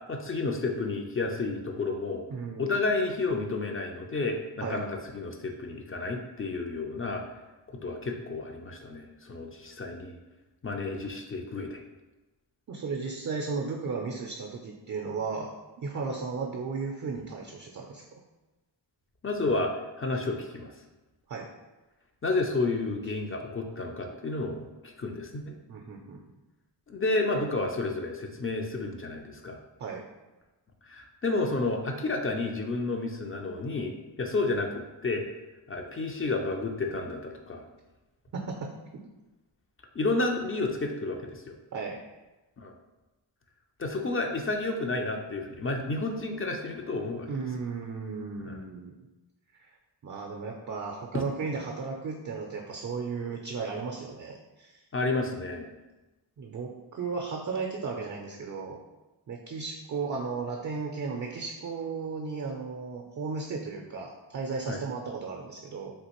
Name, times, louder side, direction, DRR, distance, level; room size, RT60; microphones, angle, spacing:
voice 1, 0.1-2.2 2.6-7.2 7.7-10.2 10.6-11.8 19.2-19.7 20.0-20.7 22.2-25.6 26.9-29.6 30.9-33.9 34.2-35.3 35.7-37.6 39.9-41.6 42.6-42.7 43.8-47.3 48.4-48.6 54.9-55.7 64.7-64.8, left 3 dB, 30° left, 3 dB, 0.4 m, -31 dB
voice 2, 2.3-2.7 4.6-4.8 12.7-15.5 15.8-18.0 21.3-21.5 25.7-26.2 29.8-30.0 38.3-38.7 41.7-42.0 47.3-48.9 49.6-49.7 50.0-54.8 56.4-58.8 59.3-65.9, right 4 dB, 40° right, 1 dB, 0.4 m, -35 dB
3.4 x 2.5 x 2.9 m, 1.1 s
cardioid pair, 50°, 47 cm